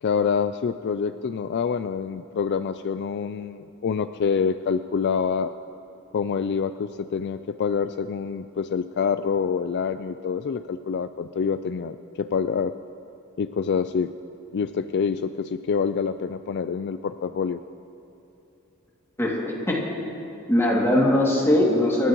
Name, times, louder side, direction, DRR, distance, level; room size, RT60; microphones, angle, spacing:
voice 1, 0.0-5.5 6.1-12.7 13.4-14.1 14.5-17.6, left 6 dB, 55° left, 11 dB, 0.3 m, -26 dB
voice 2, 19.2-19.7 20.5-22.1, left 1 dB, 10° left, -4 dB, 2.4 m, -20 dB
27.0 x 12.5 x 3.0 m, 2.9 s
head